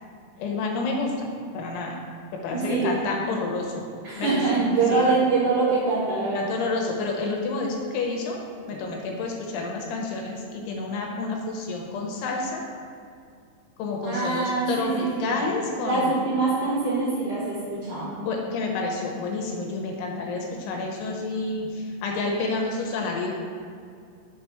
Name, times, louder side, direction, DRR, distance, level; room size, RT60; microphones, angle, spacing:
voice 1, 0.4-2.0 2.4-3.9 4.2-4.4 4.9-5.0 6.3-8.4 8.7-12.6 13.8-16.1 18.2-23.3, left 3 dB, 85° left, 0 dB, 3.4 m, -29 dB
voice 2, 2.5-3.0 4.0-6.6 14.0-15.4 15.8-18.1, right 3 dB, 55° right, -9 dB, 2.7 m, -24 dB
7.4 x 4.8 x 5.8 m, 2.3 s
omnidirectional pair, 5.5 m